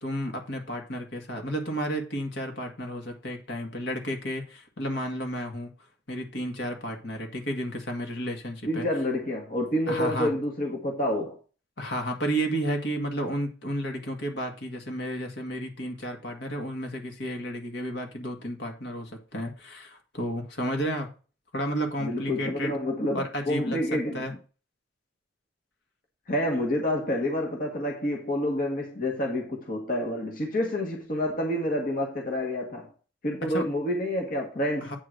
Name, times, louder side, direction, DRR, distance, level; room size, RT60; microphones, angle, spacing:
voice 1, 0.0-5.7 6.1-8.9 9.9-10.3 11.8-21.1 21.5-22.8 23.1-24.3 33.4-33.7 34.8-35.0, equal, 60° left, 1.7 m, -32 dB
voice 2, 8.7-11.4 22.0-24.2 26.3-32.9 33.2-35.0, left 1 dB, 45° left, 1.4 m, -28 dB
8.4 x 3.8 x 6.3 m
head